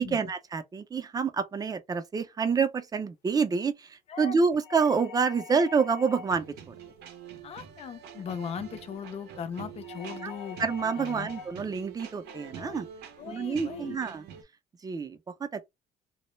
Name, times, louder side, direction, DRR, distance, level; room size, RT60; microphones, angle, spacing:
voice 1, 0.0-3.9 4.2-6.7 10.2-10.3 10.6-12.9 13.3-14.2 14.8-15.2 15.5-15.7, right 5 dB, 20° right, 0.4 m, -27 dB
sound 1, 4.6-6.5 9.8-11.6, left 7 dB, 75° left, 0.7 m, -45 dB
sound 2, 6.2-14.4, right 8 dB, 80° right, 0.6 m, -45 dB
voice 2, 7.4-10.6 10.9-11.3 12.5-12.8 13.2-14.0, left 7 dB, 40° left, 0.4 m, -38 dB
2.1 x 2.0 x 3.0 m
cardioid pair, 110°, 17 cm